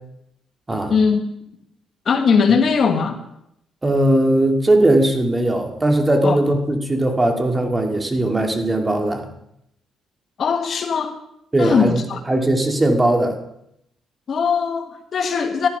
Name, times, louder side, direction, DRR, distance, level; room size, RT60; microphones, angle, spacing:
voice 1, 0.9-1.2 2.0-3.2 6.2-6.4 10.4-11.1 11.6-12.2 14.3-15.7, left 5 dB, 55° left, 7 dB, 1.5 m, -19 dB
voice 2, 3.8-9.2 11.5-12.0 12.3-13.4, right 1 dB, 20° right, 4 dB, 2.4 m, -18 dB
14.0 x 11.5 x 5.6 m, 0.79 s
cardioid pair, 90°, 0 cm